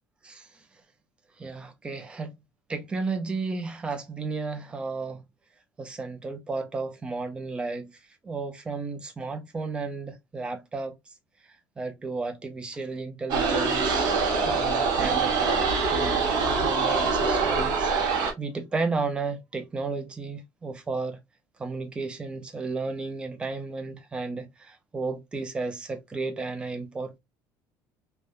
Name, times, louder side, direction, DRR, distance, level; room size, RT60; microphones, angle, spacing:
voice 1, 1.4-2.3 2.7-5.2 5.8-7.9 8.2-10.9 11.8-14.2 14.4-15.4 15.9-21.2 21.6-27.2, right 3 dB, 15° right, 0.5 m, -33 dB
sound 1, 13.3-18.3, right 4 dB, 60° right, 0.9 m, -24 dB
3.2 x 2.2 x 2.4 m
cardioid pair, 175°, 8 cm